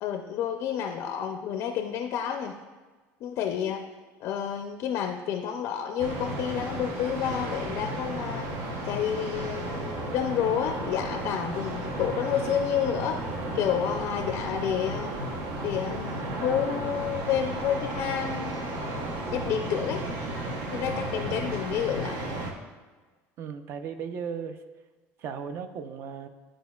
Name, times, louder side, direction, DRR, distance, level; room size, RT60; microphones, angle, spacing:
voice 1, 0.0-2.6 3.2-3.8 4.2-8.5 8.8-13.2 13.5-15.1 15.6-18.7 19.3-20.0 20.7-22.2, left 9 dB, 45° left, 4 dB, 0.4 m, -29 dB
sound 1, 6.0-22.5, right 1 dB, 75° right, 0.9 m, -34 dB
voice 2, 23.4-24.6 25.2-26.3, right 6 dB, 45° right, 9 dB, 0.5 m, -36 dB
11.0 x 5.0 x 2.3 m, 1.3 s
cardioid pair, 160°, 6 cm